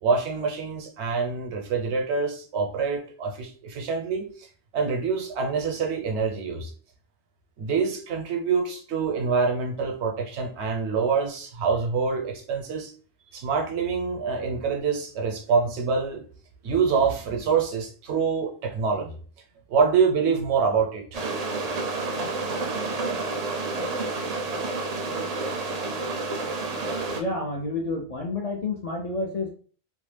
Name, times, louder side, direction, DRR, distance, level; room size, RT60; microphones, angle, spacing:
voice 1, 0.0-4.5 4.7-6.7 7.6-12.9 13.3-16.2 16.6-19.2 19.7-21.2, right 5 dB, 90° right, 3 dB, 1.0 m, -25 dB
sound 1, 21.1-27.2, right 3 dB, 50° right, 0.5 m, -29 dB
voice 2, 27.1-29.5, left 2 dB, 55° left, 0 dB, 0.4 m, -29 dB
2.7 x 2.0 x 3.2 m, 0.42 s
omnidirectional pair, 1.1 m